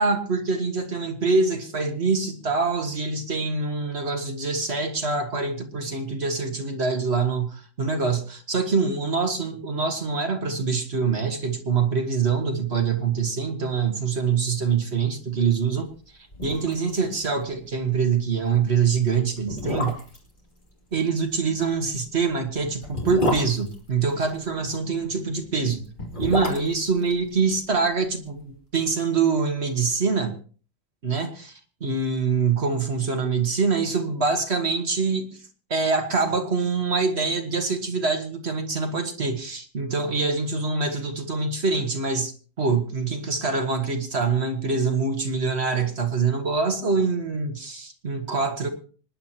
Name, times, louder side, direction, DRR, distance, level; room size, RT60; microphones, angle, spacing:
voice 1, 0.0-15.9 16.4-20.0 20.9-25.8 26.2-30.3 31.0-31.5 31.8-35.4 35.7-42.3 42.6-48.7, right 4 dB, 55° right, 5 dB, 1.8 m, -25 dB
sound 1, 15.9-16.0 16.3-17.0 17.2-17.3 17.7-17.9 18.6-18.7 19.4-20.3 21.8-24.5 25.8-28.0 28.3-28.4, equal, 40° left, 3.0 m, -29 dB
25.5 x 10.5 x 2.9 m, 0.39 s
omnidirectional pair, 1.4 m